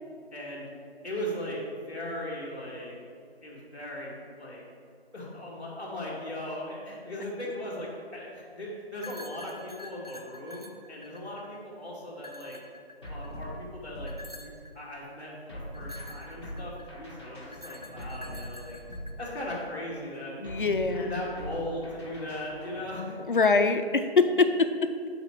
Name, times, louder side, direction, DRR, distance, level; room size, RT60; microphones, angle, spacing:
voice 1, 0.3-0.7 1.0-2.9 3.4-4.6 5.1-12.6 13.1-18.8 19.2-20.4 20.6-23.2, left 1 dB, 10° right, -19 dB, 1.0 m, -38 dB
sound 1, 8.9-11.6 12.2-13.4 14.1-14.7 15.7-17.0 17.5-19.6, left 1 dB, 40° right, 0.4 m, -47 dB
sound 2, 13.0-14.7 15.5-19.7 20.4-22.9, equal, 25° left, 0.9 m, -42 dB
voice 2, 20.4-21.1 23.3-25.1, left 4 dB, 55° left, 8 dB, 0.5 m, -24 dB
6.4 x 4.1 x 5.9 m, 2.3 s
figure-of-eight pair, 175°, 32 cm